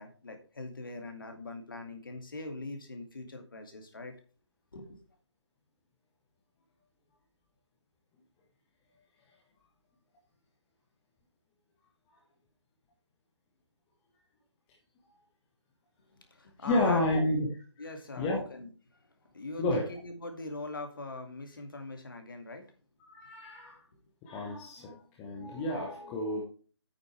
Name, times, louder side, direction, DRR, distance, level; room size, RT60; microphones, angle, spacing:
voice 1, 0.0-4.1 4.7-5.0 16.1-17.3 17.8-19.1 19.3-22.7, left 2 dB, 45° left, 5 dB, 2.1 m, -42 dB
voice 2, 16.7-17.5 18.2-18.4 19.6-19.9 23.1-23.8 24.2-26.4, left 1 dB, 5° left, -1 dB, 0.5 m, -30 dB
8.9 x 8.0 x 3.2 m, 0.38 s
figure-of-eight pair, 155°, 15 cm